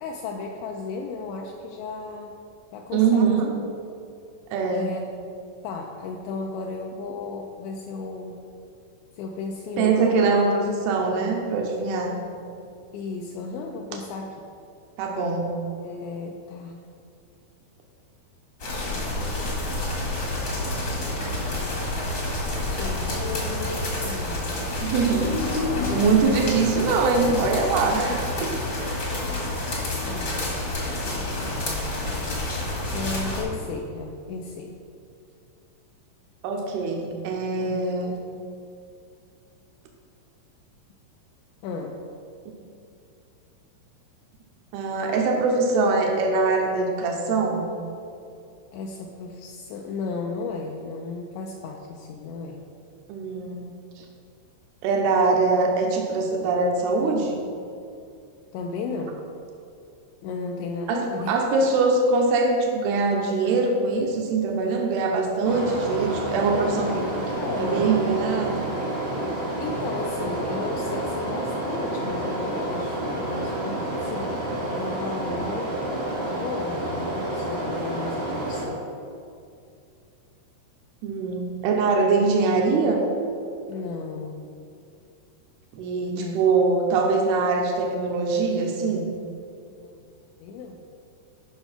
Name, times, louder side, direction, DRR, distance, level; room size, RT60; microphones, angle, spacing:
voice 1, 0.0-2.3 2.7-3.4 4.7-5.1 5.6-8.4 9.1-10.3 12.9-14.4 15.8-16.9 18.7-19.7 22.5-24.9 28.1-28.2 28.8-29.2 30.1-30.5 30.9-31.8 32.9-34.8 37.6-37.8 41.6-42.0 48.7-52.6 58.5-59.2 60.2-61.4 67.4-68.0 69.6-74.4 74.7-75.8 76.3-78.8 83.7-84.5 86.1-86.4 89.8-90.1 90.4-90.8, left 4 dB, 85° left, 1 dB, 2.6 m, -35 dB
voice 2, 2.9-3.5 4.5-4.9 9.8-12.2 15.0-15.6 24.8-25.4 25.9-28.1 28.4-28.5 28.8-29.1 36.4-38.2 44.7-47.7 53.1-53.6 54.0-54.1 54.8-57.4 60.9-67.0 67.5-68.6 81.0-83.0 85.7-89.1, right 4 dB, 85° right, 1 dB, 2.3 m, -23 dB
sound 1, 18.6-33.4, left 2 dB, 55° left, 1.2 m, -28 dB
sound 2, 65.4-78.6, right 1 dB, 40° right, 0.7 m, -29 dB
11.5 x 5.6 x 5.7 m, 2.5 s
omnidirectional pair, 5.6 m